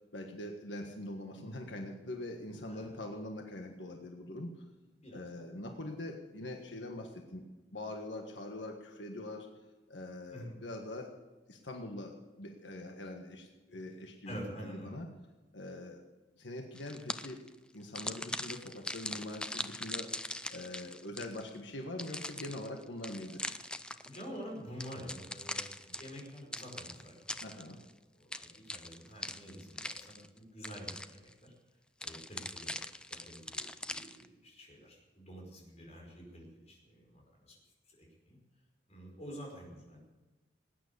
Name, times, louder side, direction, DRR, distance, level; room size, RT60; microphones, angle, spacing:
voice 1, 0.1-4.5 5.1-7.4 7.7-9.5 9.9-11.1 11.5-15.1 15.5-16.1 16.4-17.4 17.7-20.1 20.5-23.4 27.4-27.8, left 1 dB, 90° left, 3 dB, 1.6 m, -43 dB
voice 2, 14.3-15.0 24.0-27.8 28.2-31.5 32.0-32.8 33.1-37.6 37.9-38.4 38.9-40.0, equal, 35° left, -1 dB, 5.2 m, -48 dB
sound 1, 16.8-17.5 17.9-21.5 22.0-24.3 24.8-27.9 28.3-30.4 30.6-31.3 32.0-34.3, left 1 dB, 5° left, 0.5 m, -41 dB
19.0 x 9.3 x 8.2 m, 1.2 s
head